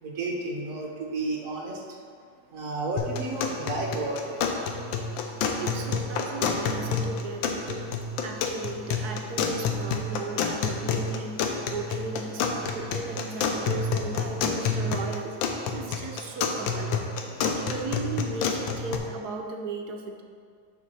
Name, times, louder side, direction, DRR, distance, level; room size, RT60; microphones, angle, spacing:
voice 1, 0.0-1.8 2.5-4.4, right 2 dB, 50° right, -2 dB, 1.3 m, -31 dB
sound 1, 3.0-19.0, left 5 dB, 80° left, 1.4 m, -29 dB
voice 2, 5.6-7.9 8.2-20.2, right 3 dB, 70° right, 3 dB, 1.0 m, -36 dB
6.7 x 5.0 x 5.4 m, 2.1 s
omnidirectional pair, 2.1 m